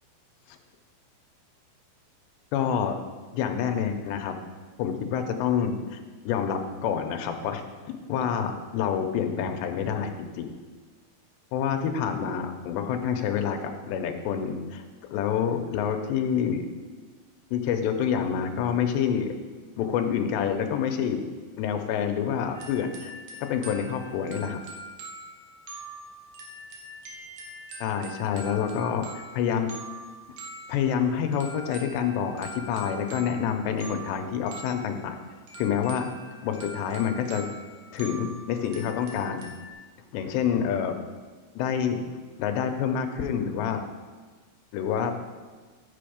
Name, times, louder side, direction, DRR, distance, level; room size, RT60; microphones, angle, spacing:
voice 1, 2.5-3.0 3.3-4.3 4.8-6.0 6.3-10.5 11.5-14.8 15.1-16.7 17.5-19.3 19.8-21.2 21.6-23.1 23.4-24.6 27.8-29.7 30.7-35.2 35.6-36.1 36.4-37.4 37.9-39.5 40.1-41.0 41.6-42.0 42.4-43.8 44.7-45.1, left 8 dB, 85° left, 6 dB, 2.9 m, -27 dB
sound 1, 22.5-39.7, right 1 dB, 80° right, 1.5 m, -44 dB
10.5 x 7.7 x 5.1 m, 1.4 s
omnidirectional pair, 5.1 m